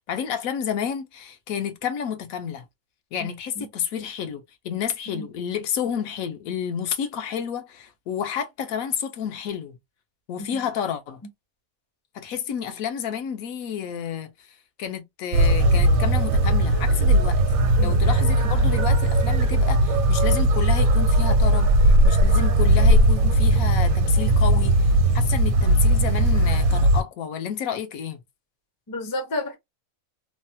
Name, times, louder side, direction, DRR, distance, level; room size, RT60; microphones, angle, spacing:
voice 1, 0.1-2.6 3.1-9.8 10.3-11.2 12.1-14.5 14.8-17.4 17.8-21.7 22.0-28.2, left 8 dB, 80° left, 1.1 m, -30 dB
sound 1, 15.3-27.0, right 1 dB, 80° right, 1.1 m, -18 dB
voice 2, 28.9-29.6, left 2 dB, 35° left, 0.3 m, -31 dB
3.2 x 2.1 x 2.7 m
omnidirectional pair, 1.5 m